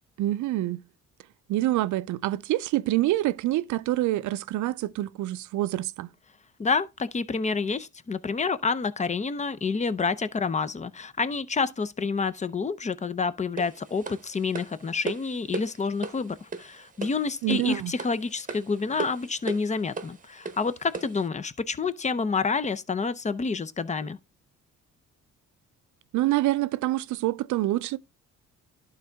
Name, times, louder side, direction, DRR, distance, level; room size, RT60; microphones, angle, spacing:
voice 1, 0.2-0.8 1.5-6.1 17.4-17.9 26.1-28.0, right 16 dB, 75° right, 0.5 m, -26 dB
voice 2, 6.6-24.2, left 4 dB, 25° left, 0.6 m, -28 dB
sound 1, 13.6-21.3, right 4 dB, 25° right, 1.0 m, -37 dB
11.5 x 4.0 x 3.4 m
cardioid pair, 90°, 30 cm